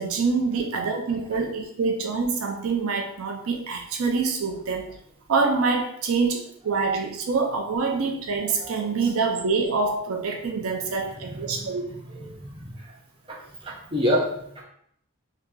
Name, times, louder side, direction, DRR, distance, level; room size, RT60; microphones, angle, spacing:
voice 1, 0.0-4.9 5.3-11.8, right 4 dB, 70° right, 3 dB, 0.4 m, -25 dB
voice 2, 11.1-12.9 13.3-14.6, equal, 25° right, -2 dB, 0.6 m, -29 dB
2.8 x 2.8 x 3.5 m, 0.74 s
head